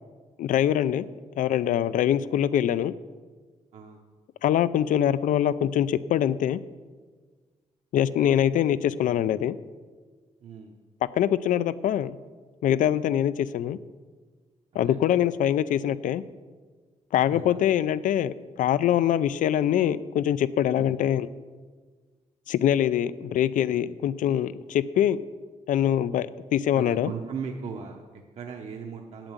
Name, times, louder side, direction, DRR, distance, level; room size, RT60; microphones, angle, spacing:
voice 1, 0.4-1.1 1.4-2.9 4.4-6.6 7.9-9.6 11.1-12.2 12.6-13.8 14.7-16.2 17.1-21.3 22.5-25.2 25.7-27.1, left 10 dB, 80° left, 17 dB, 0.5 m, -24 dB
voice 2, 3.7-4.0 10.4-10.8 14.7-15.3 17.2-17.4 20.8-20.9 26.7-29.3, right 6 dB, 55° right, 1 dB, 0.9 m, -38 dB
8.9 x 8.1 x 9.0 m, 1.5 s
wide cardioid pair, 170°, 13 cm